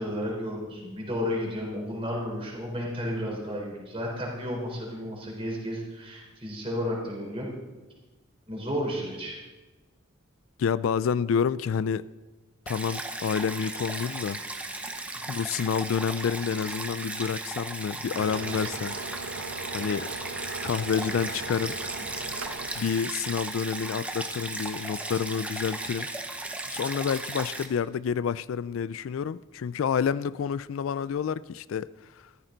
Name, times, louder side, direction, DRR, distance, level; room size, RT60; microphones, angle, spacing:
voice 1, 0.0-7.5 8.5-9.3 26.6-26.7, equal, 25° right, 3.9 m, -32 dB
voice 2, 10.6-12.0 12.7-14.4 15.3-18.9 19.4-20.1 20.6-21.8 22.8-26.1 26.7-31.9, left 7 dB, 70° left, 0.3 m, -29 dB
Stream, 12.7-27.7, right 2 dB, 5° right, 0.8 m, -36 dB
sound 1, 18.1-23.1, right 3 dB, 70° right, 0.9 m, -39 dB
14.5 x 13.0 x 3.9 m
head